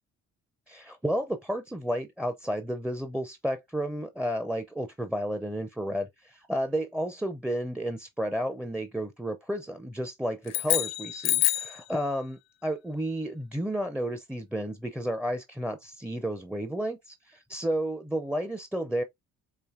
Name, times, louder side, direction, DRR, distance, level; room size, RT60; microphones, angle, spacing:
voice 1, 0.7-19.0, equal, 5° right, 0.4 m, -32 dB
sound 1, 10.5-11.8, left 15 dB, 65° left, 0.6 m, -27 dB
4.9 x 2.6 x 2.4 m
cardioid pair, 90°, 30 cm